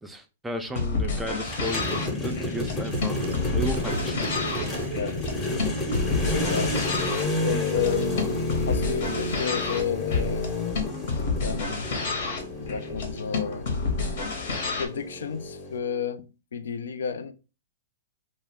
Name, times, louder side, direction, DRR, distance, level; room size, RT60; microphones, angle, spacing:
voice 1, 0.0-3.2 3.5-4.4 8.2-8.3, equal, 5° right, 0.4 m, -34 dB
sound 1, 0.7-14.9, left 4 dB, 60° left, 0.9 m, -30 dB
sound 2, 1.5-15.8, left 2 dB, 20° left, 0.7 m, -31 dB
sound 3, 1.6-6.9, right 5 dB, 75° right, 0.4 m, -36 dB
voice 2, 7.4-8.3 8.7-10.6 11.4-11.9 12.6-13.7 14.8-17.3, left 7 dB, 80° left, 0.3 m, -31 dB
2.2 x 2.1 x 3.5 m
hypercardioid pair, 130°, 0 cm